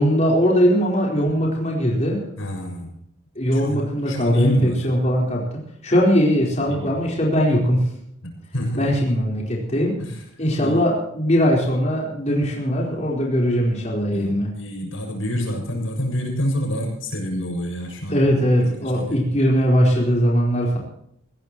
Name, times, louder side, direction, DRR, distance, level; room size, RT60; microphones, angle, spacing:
voice 1, 0.0-2.2 3.3-7.9 8.7-10.0 10.4-14.5 18.1-20.8, equal, 35° left, -3 dB, 4.3 m, -20 dB
voice 2, 2.4-2.9 3.5-4.9 6.7-6.9 8.2-8.9 10.0-10.2 10.6-10.8 14.1-18.2 18.6-19.2, equal, 85° left, 1 dB, 6.7 m, -27 dB
21.0 x 16.5 x 3.1 m, 0.73 s
head